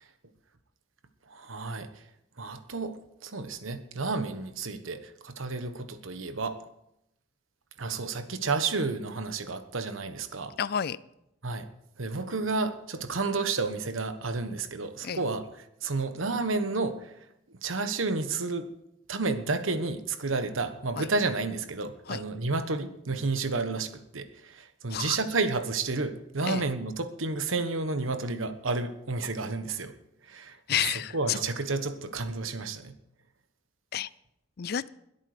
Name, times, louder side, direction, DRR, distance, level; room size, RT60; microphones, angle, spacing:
voice 1, 1.3-1.9 2.4-6.6 7.8-10.5 11.4-11.7 12.0-15.5 15.8-17.1 17.6-18.7 19.1-29.9 30.3-30.8 31.1-32.9, right 3 dB, 75° right, 9 dB, 1.3 m, -31 dB
voice 2, 10.6-11.0 15.0-15.2 21.0-21.1 22.1-22.2 24.9-25.2 26.4-26.6 30.7-31.4 33.9-34.1 34.6-34.9, left 9 dB, 50° left, 19 dB, 0.4 m, -30 dB
21.5 x 8.5 x 5.0 m, 0.82 s
head